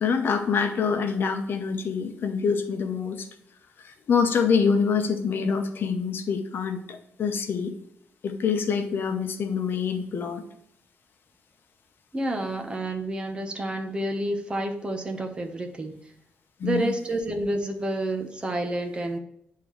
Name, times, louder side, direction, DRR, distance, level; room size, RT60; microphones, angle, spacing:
voice 1, 0.0-3.3 3.8-7.7 8.2-10.4 16.6-16.9, left 6 dB, 60° left, 6 dB, 0.8 m, -26 dB
voice 2, 12.1-15.9 16.6-19.2, right 1 dB, 25° right, 4 dB, 1.0 m, -29 dB
10.5 x 3.7 x 3.1 m, 0.74 s
wide cardioid pair, 135°, 4 cm